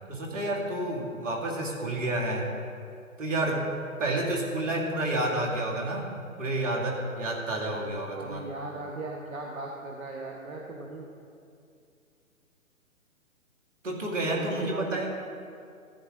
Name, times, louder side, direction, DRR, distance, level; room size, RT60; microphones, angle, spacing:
voice 1, 0.1-2.5 3.2-3.7 4.0-6.1 6.4-8.5 13.8-15.1, right 1 dB, 60° right, -1 dB, 2.7 m, -30 dB
voice 2, 8.2-11.1 14.3-15.0, right 2 dB, 75° right, 0 dB, 1.4 m, -38 dB
14.0 x 9.3 x 3.9 m, 2.4 s
figure-of-eight pair, 135°, 41 cm